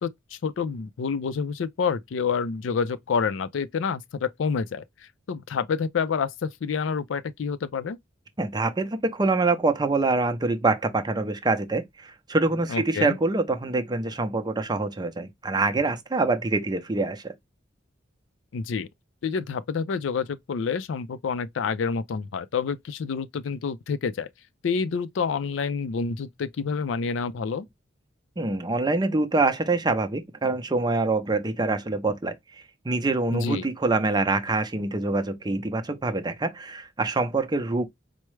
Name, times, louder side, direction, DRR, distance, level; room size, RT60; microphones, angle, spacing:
voice 1, 0.0-4.8 5.3-8.0 12.7-13.2 18.5-18.9 19.2-24.3 24.6-27.7 33.3-33.6, left 5 dB, 80° left, 0.4 m, -28 dB
voice 2, 8.4-17.3 28.4-32.3 32.8-37.9, right 3 dB, 20° right, 0.5 m, -25 dB
4.5 x 2.0 x 3.1 m
head